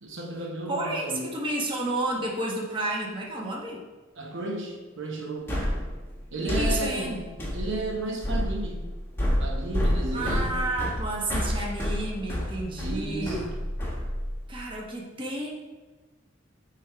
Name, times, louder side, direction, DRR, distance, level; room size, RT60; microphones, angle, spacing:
voice 1, 0.0-1.3 4.2-5.6 6.3-7.3 7.5-8.9 9.4-10.6 12.8-13.5, right 2 dB, 65° right, 0 dB, 0.8 m, -33 dB
voice 2, 0.7-3.8 6.5-7.2 10.1-13.5 14.5-15.5, right 2 dB, 25° right, -2 dB, 1.0 m, -31 dB
sound 1, 5.5-14.6, equal, 10° left, 1.1 m, -29 dB
7.3 x 3.3 x 4.6 m, 1.2 s
head